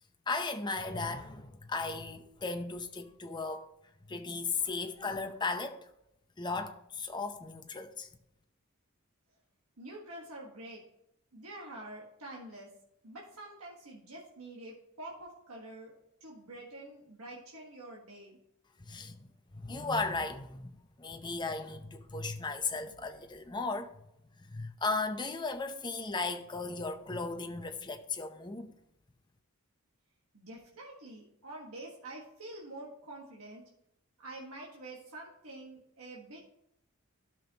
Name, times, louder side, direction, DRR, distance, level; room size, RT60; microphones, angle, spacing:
voice 1, 0.3-3.7 4.1-5.9 6.4-8.1 18.8-19.3 19.5-20.7 21.0-23.9 24.4-28.7, left 3 dB, 20° left, 0.7 m, -36 dB
voice 2, 9.8-10.8 11.3-12.7 13.0-15.9 16.2-18.4 30.3-33.6 34.2-36.5, right 1 dB, 85° right, 1.5 m, -47 dB
12.5 x 6.1 x 2.9 m
head